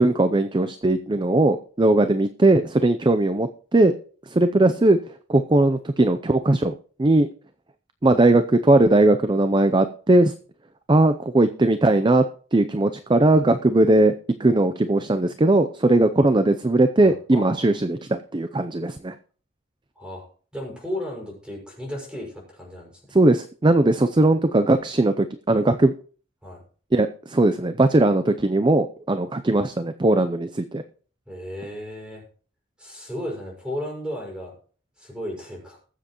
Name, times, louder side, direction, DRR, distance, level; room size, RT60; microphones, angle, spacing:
voice 1, 0.0-3.9 4.3-5.0 5.3-6.7 7.0-7.3 8.0-10.3 10.9-12.2 12.5-14.1 14.4-19.1 23.1-25.9 26.9-30.8, right 2 dB, 25° right, 10 dB, 0.5 m, -19 dB
voice 2, 17.0-17.8 20.0-20.2 20.5-22.9 26.4-26.6 31.3-32.2 32.8-34.5 35.0-35.8, left 1 dB, 5° right, -1 dB, 5.8 m, -34 dB
20.5 x 7.6 x 3.0 m, 0.42 s
head